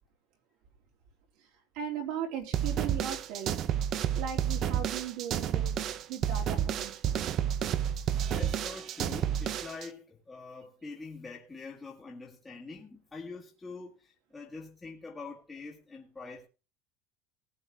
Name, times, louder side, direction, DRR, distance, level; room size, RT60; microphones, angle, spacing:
voice 1, 1.7-3.6 4.1-7.2, right 8 dB, 55° right, 3.5 m, -38 dB
sound 1, 2.5-9.9, right 9 dB, 35° right, 0.8 m, -30 dB
voice 2, 7.7-16.5, left 4 dB, 10° left, 1.9 m, -45 dB
19.5 x 8.5 x 3.6 m
cardioid pair, 175°, 0 cm